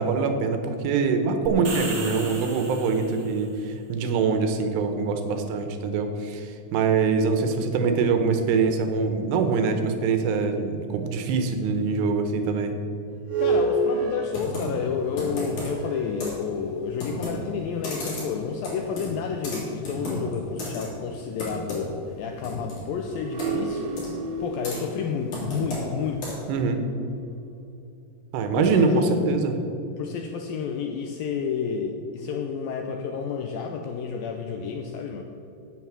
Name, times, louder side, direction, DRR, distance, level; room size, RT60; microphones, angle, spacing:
voice 1, 0.0-12.7 26.5-26.8 28.3-29.5, right 4 dB, 85° right, 7 dB, 3.1 m, -24 dB
sound 1, 1.5-3.4, right 3 dB, 45° right, 1.9 m, -36 dB
sound 2, 13.1-16.9 17.6-17.7 23.0-27.2, right 2 dB, 60° right, 2.0 m, -30 dB
voice 2, 13.4-24.0 24.4-26.4 28.6-29.2 30.0-35.2, left 6 dB, 85° left, 3 dB, 2.1 m, -30 dB
Computer keyboard, 14.3-26.6, left 1 dB, 50° left, 4.5 m, -35 dB
9.3 x 8.2 x 7.4 m, 2.7 s
omnidirectional pair, 4.8 m